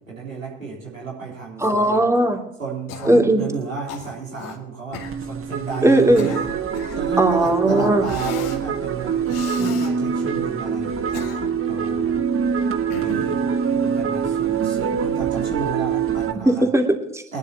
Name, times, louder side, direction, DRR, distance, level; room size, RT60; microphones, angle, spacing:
voice 1, 0.0-2.0 2.6-6.4 6.9-11.3 11.6-12.3 13.0-13.5 14.0-16.7 17.3-17.4, right 4 dB, 85° right, -4 dB, 3.9 m, -32 dB
voice 2, 1.6-2.4 3.0-3.4 5.8-6.3 7.2-8.0 16.4-17.4, right 1 dB, 5° right, 2 dB, 2.8 m, -18 dB
Cough, 2.9-3.3 3.9-4.6 4.9-5.2 5.9-7.1 8.0-8.6 9.3-9.9 10.9-11.7 12.9-13.4, left 7 dB, 60° left, 2.3 m, -35 dB
sound 1, 4.9-16.3, right 7 dB, 35° right, 1.6 m, -24 dB
23.0 x 12.0 x 3.0 m, 0.78 s
figure-of-eight pair, 55°, 39 cm